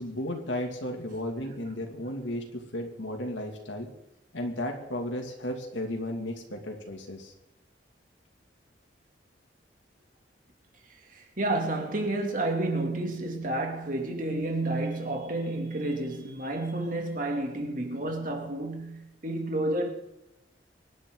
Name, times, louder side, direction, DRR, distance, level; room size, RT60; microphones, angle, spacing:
voice 1, 0.0-3.9 4.3-7.3, left 1 dB, 85° left, 2.6 m, -34 dB
voice 2, 11.1-19.9, right 2 dB, 45° right, 2.9 m, -30 dB
24.5 x 11.0 x 4.0 m
head